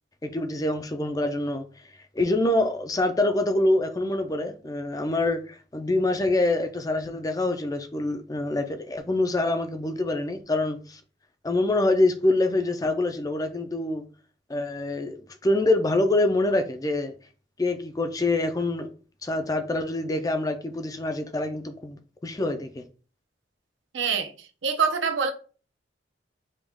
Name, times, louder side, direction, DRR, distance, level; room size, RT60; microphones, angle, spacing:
voice 1, 0.2-1.7 2.2-11.0 11.4-14.0 14.5-15.2 15.4-17.1 17.6-18.9 19.2-22.8, left 2 dB, 20° left, 0.4 m, -25 dB
voice 2, 23.9-25.3, right 6 dB, 80° right, 0.7 m, -26 dB
5.1 x 2.3 x 3.5 m
head